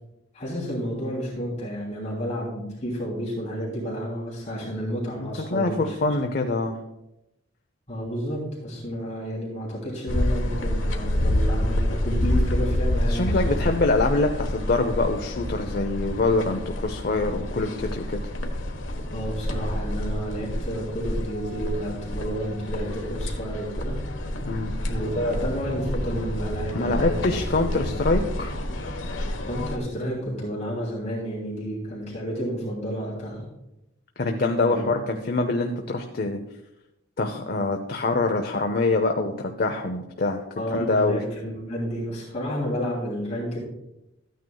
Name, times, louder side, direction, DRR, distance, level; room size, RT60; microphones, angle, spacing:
voice 1, 0.3-5.9 6.2-6.4 7.9-13.7 19.1-24.0 24.9-27.4 27.7-27.9 29.4-33.4 34.6-34.8 40.6-43.6, equal, 35° left, -4 dB, 3.0 m, -31 dB
voice 2, 5.2-6.8 13.1-18.2 24.4-24.7 26.7-28.5 34.2-36.4 37.2-40.4 40.7-41.2, left 3 dB, 55° left, 4 dB, 0.7 m, -25 dB
sound 1, 10.1-29.8, left 1 dB, 80° left, 1.2 m, -28 dB
14.0 x 9.3 x 2.3 m, 0.90 s
head